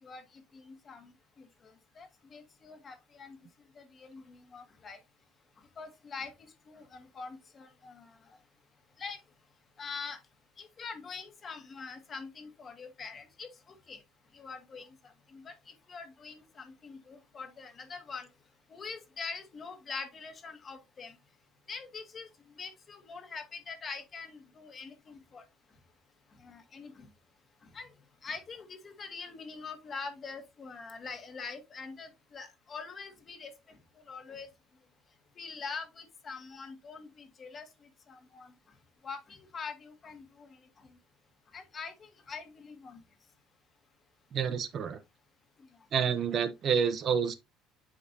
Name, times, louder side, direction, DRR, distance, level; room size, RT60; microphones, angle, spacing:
voice 1, 0.0-1.1 1.4-3.4 3.7-5.0 5.8-8.4 9.0-9.2 9.8-10.2 10.6-14.0 14.3-18.3 18.7-21.2 21.7-25.4 26.4-27.1 27.6-27.9 28.2-34.5 35.3-38.5 39.0-40.9 41.5-43.0 45.6-45.7, left 5 dB, 25° left, 1.4 m, -44 dB
voice 2, 44.3-45.0 45.9-47.3, right 7 dB, 40° right, 0.6 m, -28 dB
8.3 x 5.1 x 2.6 m
cardioid pair, 160°, 0 cm